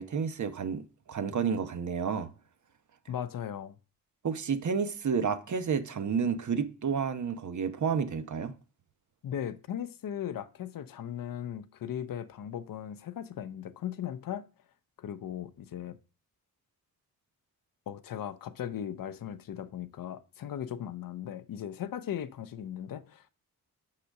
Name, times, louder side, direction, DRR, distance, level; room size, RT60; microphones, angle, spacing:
voice 1, 0.0-2.3 4.2-8.5, right 6 dB, 50° right, 0.9 m, -30 dB
voice 2, 3.1-3.7 9.2-14.5 15.0-16.0 17.9-23.3, left 9 dB, 60° left, 0.7 m, -38 dB
5.8 x 5.0 x 6.5 m
cardioid pair, 70°, 37 cm